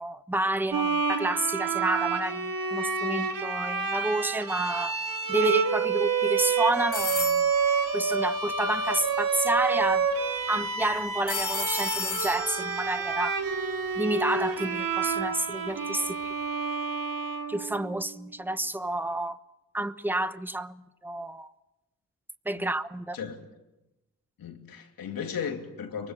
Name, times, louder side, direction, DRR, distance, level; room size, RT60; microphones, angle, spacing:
voice 1, 0.0-4.9 5.3-7.5 7.9-10.1 10.5-13.4 14.0-16.3 17.5-19.4 19.7-21.5 22.4-23.2, right 1 dB, 5° right, 1.0 m, -30 dB
Bowed string instrument, 0.7-18.1, right 5 dB, 75° right, 2.5 m, -29 dB
sound 1, 6.9-9.0 11.3-14.3, left 6 dB, 60° left, 4.0 m, -35 dB
voice 2, 24.4-26.1, left 7 dB, 90° left, 3.0 m, -35 dB
24.0 x 23.5 x 7.6 m
cardioid pair, 85°, 34 cm